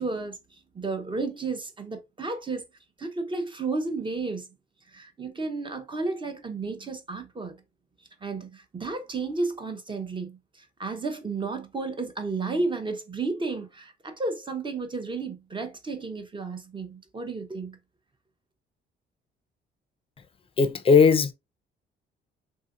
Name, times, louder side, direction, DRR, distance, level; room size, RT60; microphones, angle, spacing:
voice 1, 0.0-2.6 3.0-4.5 4.9-7.6 8.2-17.8, right 3 dB, 25° right, 0.8 m, -32 dB
voice 2, 20.6-21.3, left 5 dB, 30° left, 0.5 m, -18 dB
3.6 x 2.7 x 2.4 m
cardioid pair, 90°, 20 cm